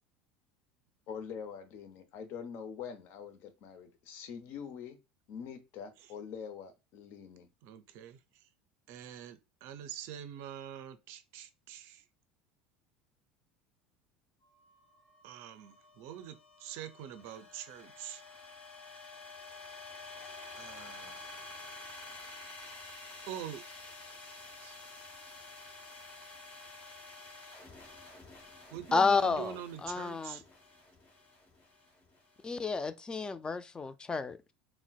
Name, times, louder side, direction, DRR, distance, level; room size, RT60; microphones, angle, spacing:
voice 1, 1.1-5.0 5.3-7.5, left 7 dB, 55° left, 0.7 m, -44 dB
voice 2, 7.6-8.5 8.9-12.0 15.2-18.2 20.6-21.2 23.3-23.6 24.6-24.8 28.7-30.4, right 10 dB, 60° right, 0.4 m, -45 dB
sound 1, 14.4-32.7, left 3 dB, 40° left, 1.3 m, -50 dB
voice 3, 28.9-29.5 29.8-30.4 32.4-34.5, left 4 dB, 20° left, 0.4 m, -30 dB
3.8 x 2.1 x 2.3 m
hypercardioid pair, 75°, 5 cm